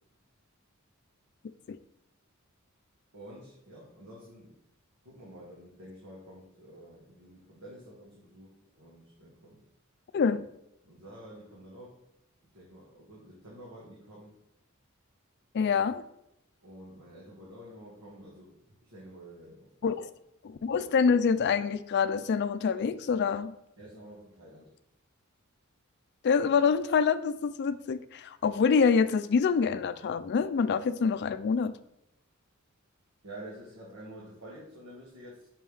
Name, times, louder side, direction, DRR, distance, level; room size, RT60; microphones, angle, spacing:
voice 1, 3.1-4.6 5.0-9.6 10.8-12.0 12.5-14.4 16.6-18.6 18.8-20.0 23.8-24.7 33.2-35.5, right 1 dB, 90° right, -6 dB, 1.6 m, -49 dB
voice 2, 15.5-16.0 19.8-20.1 20.4-23.5 26.2-31.8, left 5 dB, 50° left, 12 dB, 0.4 m, -26 dB
5.4 x 5.3 x 3.3 m, 0.82 s
head